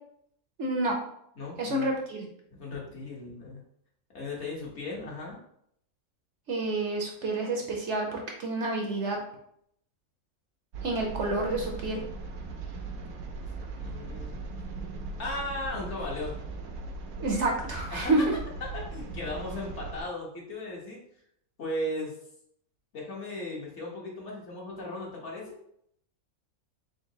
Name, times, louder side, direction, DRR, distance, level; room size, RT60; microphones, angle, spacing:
voice 1, 0.6-0.9 1.6-2.3 6.5-9.2 10.8-12.0 17.2-18.2, right 2 dB, 60° right, 1 dB, 0.9 m, -29 dB
voice 2, 1.4-1.9 2.6-3.6 4.1-5.4 13.8-14.5 15.2-16.4 17.9-18.1 18.7-21.0 21.6-22.1 22.9-25.6, left 2 dB, 55° left, -3 dB, 1.2 m, -36 dB
sound 1, 10.7-20.0, right 3 dB, 80° right, 1.1 m, -39 dB
3.8 x 3.7 x 2.7 m, 0.70 s
omnidirectional pair, 1.5 m